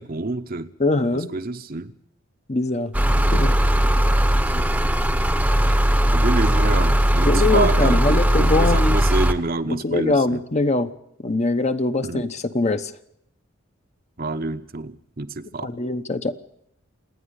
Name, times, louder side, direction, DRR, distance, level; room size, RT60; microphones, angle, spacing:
voice 1, 0.0-0.7 1.1-1.9 3.1-3.6 4.5-4.8 6.1-10.4 12.0-12.2 14.2-15.8, right 3 dB, 45° right, 0.9 m, -28 dB
voice 2, 0.8-1.3 2.5-2.9 3.3-3.5 7.2-9.0 9.7-10.9 11.2-12.9 15.6-16.3, left 2 dB, 35° left, 0.9 m, -22 dB
sound 1, 2.9-9.3, equal, 5° right, 0.9 m, -18 dB
27.0 x 10.0 x 9.8 m
head